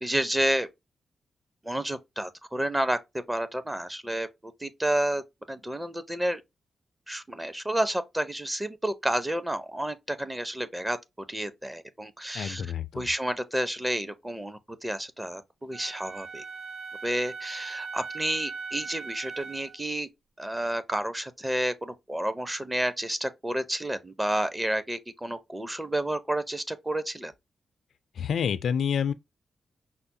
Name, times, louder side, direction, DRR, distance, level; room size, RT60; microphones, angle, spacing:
voice 1, 0.0-0.7 1.6-6.4 7.1-16.4 17.0-20.1 20.4-27.3, right 1 dB, 15° right, 0.6 m, -30 dB
voice 2, 12.3-13.1 28.2-29.1, left 7 dB, 75° left, 0.3 m, -28 dB
Wind instrument woodwind instrument, 15.7-19.8, right 4 dB, 70° right, 0.6 m, -39 dB
5.6 x 2.0 x 2.6 m
cardioid pair, 75°, 0 cm